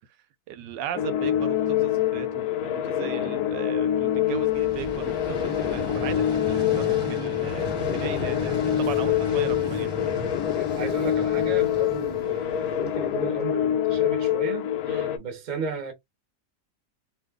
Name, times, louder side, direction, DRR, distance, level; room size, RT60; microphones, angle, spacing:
voice 1, 0.5-9.9 14.9-15.1, right 10 dB, 80° right, 1.2 m, -37 dB
sound 1, 0.9-15.2, left 11 dB, 70° left, 0.9 m, -25 dB
Vehicle, 4.3-13.3, left 1 dB, 20° left, 0.6 m, -35 dB
voice 2, 10.6-15.9, right 4 dB, 35° right, 0.7 m, -34 dB
2.7 x 2.4 x 3.5 m
omnidirectional pair, 1.9 m